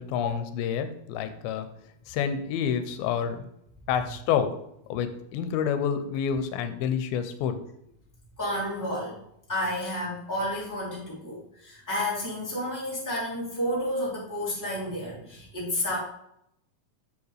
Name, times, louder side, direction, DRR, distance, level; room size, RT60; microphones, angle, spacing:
voice 1, 0.0-1.7 2.1-3.4 3.9-4.6 4.9-7.6, left 8 dB, 90° left, 9 dB, 2.5 m, -28 dB
voice 2, 8.4-9.2 9.5-16.0, left 1 dB, 5° left, -7 dB, 2.2 m, -31 dB
7.2 x 6.9 x 3.3 m, 0.75 s
omnidirectional pair, 4.3 m